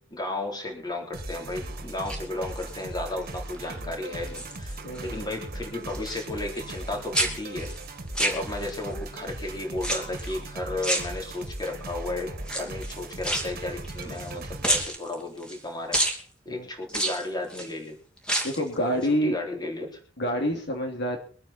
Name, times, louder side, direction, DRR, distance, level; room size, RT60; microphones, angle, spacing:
voice 1, 0.1-4.7 5.0-7.7 8.2-16.1 16.5-18.0 18.6-20.0, left 2 dB, 20° left, 2 dB, 3.8 m, -34 dB
sound 1, 1.1-14.8, right 2 dB, 50° right, 1.8 m, -38 dB
sound 2, 1.9-2.9 3.3-3.7 4.0-5.1 5.3-6.9 7.1-8.9 9.8-10.4 10.8-11.7 12.4-14.3 14.6-15.6 15.9-16.2 16.9-17.7 18.2-18.7 19.0-19.1, right 1 dB, 5° left, 2.7 m, -30 dB
voice 2, 4.8-5.2 16.5-16.7 18.4-19.4 20.2-21.2, equal, 60° left, 3 dB, 2.7 m, -27 dB
23.5 x 9.2 x 4.4 m, 0.41 s
head